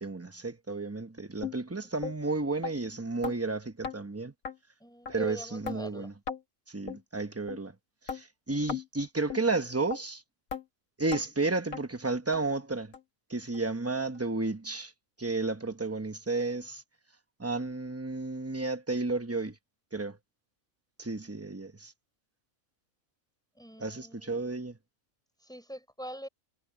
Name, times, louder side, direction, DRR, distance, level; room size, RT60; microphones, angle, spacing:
voice 1, 0.0-4.3 5.1-6.1 6.7-7.7 8.0-10.2 11.0-12.9 13.3-14.9 15.2-16.8 17.4-19.6 19.9-20.2 21.0-21.9 23.8-24.8, right 3 dB, 15° right, 0.7 m, -32 dB
sound 1, 1.4-1.6 2.0-2.2 2.6-2.7 3.2-3.4 3.8-4.0 4.4-4.6 5.1-5.2 5.7-5.8 6.3-6.4 6.9-7.0 7.5-7.6 8.1-8.2 8.7-8.9 9.3-9.4 9.9-10.0 10.5-10.6 11.1-11.2 11.7-11.8 12.3-12.4 12.9-13.0 13.5-13.6 14.1-14.2, left 6 dB, 85° left, 2.2 m, -36 dB
voice 2, 4.8-6.1 23.6-24.3 25.4-26.3, equal, 5° left, 4.3 m, -43 dB
omnidirectional pair, 1.4 m